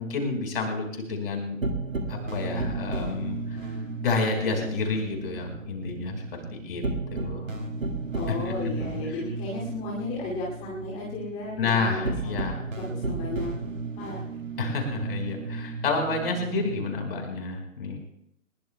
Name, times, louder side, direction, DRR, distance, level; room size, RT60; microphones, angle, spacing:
voice 1, 0.0-1.6 2.1-3.4 4.0-6.1 6.5-6.8 7.1-7.4 8.3-8.5 8.8-8.9 11.6-12.6 14.6-18.0, left 3 dB, 45° left, 3 dB, 4.5 m, -29 dB
sound 1, 1.6-16.9, right 3 dB, 75° right, 2.0 m, -34 dB
voice 2, 8.1-12.3 12.8-13.5 14.0-14.4, left 2 dB, 15° left, -5 dB, 2.5 m, -34 dB
21.0 x 20.0 x 2.2 m, 0.76 s
figure-of-eight pair, 130°, 40 cm